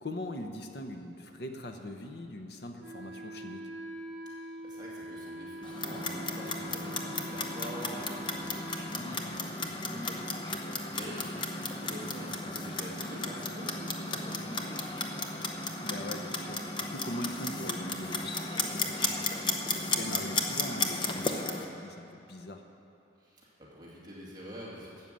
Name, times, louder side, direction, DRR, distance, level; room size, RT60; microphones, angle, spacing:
voice 1, 0.0-3.6 10.5-10.8 15.8-22.6, left 1 dB, 55° left, 4 dB, 0.8 m, -41 dB
Wind instrument woodwind instrument, 2.8-9.0, equal, 65° right, 1.1 m, -43 dB
voice 2, 4.6-15.6 23.2-25.1, equal, 20° right, -6 dB, 2.2 m, -46 dB
Clock, 5.6-21.7, left 3 dB, 25° left, 0.8 m, -34 dB
12.5 x 8.2 x 7.5 m, 2.9 s
head